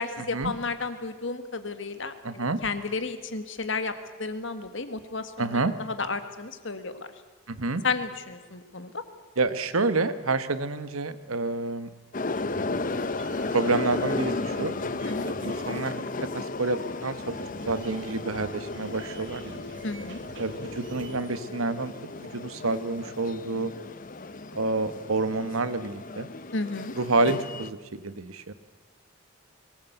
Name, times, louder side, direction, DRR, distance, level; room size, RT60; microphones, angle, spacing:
voice 1, 0.0-3.9 4.2-7.1 7.8-9.0 15.0-15.3 19.8-20.2 26.5-26.9, left 4 dB, 60° left, 9 dB, 1.7 m, -32 dB
voice 2, 2.2-2.6 5.4-5.7 7.5-7.8 9.4-11.9 13.5-14.7 15.4-16.0 16.3-17.4 17.7-19.6 20.4-23.7 24.5-26.3 27.0-28.5, right 3 dB, 85° right, 12 dB, 1.3 m, -28 dB
sound 1, 12.1-27.7, left 3 dB, 40° left, 0.7 m, -34 dB
sound 2, 12.3-21.2, right 2 dB, 55° right, 1.4 m, -46 dB
22.5 x 19.0 x 8.0 m, 1.4 s
head